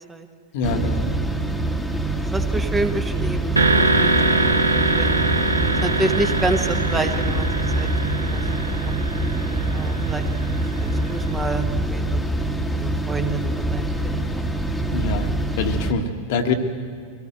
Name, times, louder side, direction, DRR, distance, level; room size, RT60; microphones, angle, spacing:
voice 1, 0.5-1.1 14.9-16.5, left 4 dB, 50° left, 5 dB, 1.6 m, -25 dB
sound 1, 0.6-15.9, right 2 dB, 5° left, 1.7 m, -25 dB
voice 2, 2.2-4.3 4.7-5.2 5.8-7.9 8.2-8.4 8.9-9.0 9.7-10.2 10.8-11.6 11.9-12.2 12.7-14.4, right 2 dB, 15° right, 6 dB, 1.4 m, -28 dB
sound 2, 3.6-11.3, right 2 dB, 80° right, 1.2 m, -23 dB
23.5 x 17.5 x 7.7 m, 2.1 s
figure-of-eight pair, 90°, 0 cm